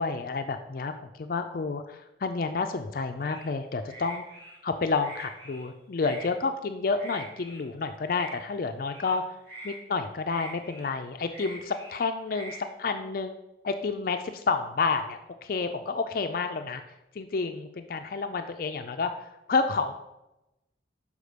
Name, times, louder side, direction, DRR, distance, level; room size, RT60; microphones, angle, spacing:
voice 1, 0.0-4.2 4.6-9.2 9.6-13.4 13.6-16.8 17.2-19.1 19.5-19.9, left 4 dB, 50° left, 7 dB, 0.4 m, -30 dB
sound 1, 3.2-3.5 3.9-4.6 5.0-5.7 6.0-6.3 6.9-7.6 8.0-8.4 8.9-9.2 9.4-9.8 10.3-10.9 11.3-12.0 12.3-12.6, right 1 dB, 65° right, 2.0 m, -44 dB
6.5 x 5.1 x 5.0 m, 0.94 s
head